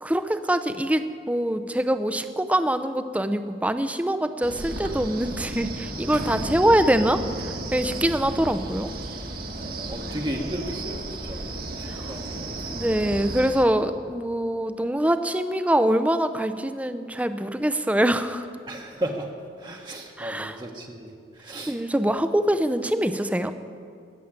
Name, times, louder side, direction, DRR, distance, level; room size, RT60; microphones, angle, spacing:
voice 1, 0.0-7.2 7.4-8.9 11.9-12.0 12.7-18.5 20.2-20.6 21.7-23.5, right 1 dB, 10° right, 10 dB, 0.6 m, -24 dB
Wind, 4.4-13.6, right 2 dB, 55° right, 1.5 m, -33 dB
voice 2, 9.5-11.4 11.8-12.7 18.7-19.3 19.6-21.1 21.4-21.8 22.1-22.2, right 1 dB, 25° right, 1 dB, 1.0 m, -34 dB
18.5 x 7.3 x 8.8 m, 2.3 s
head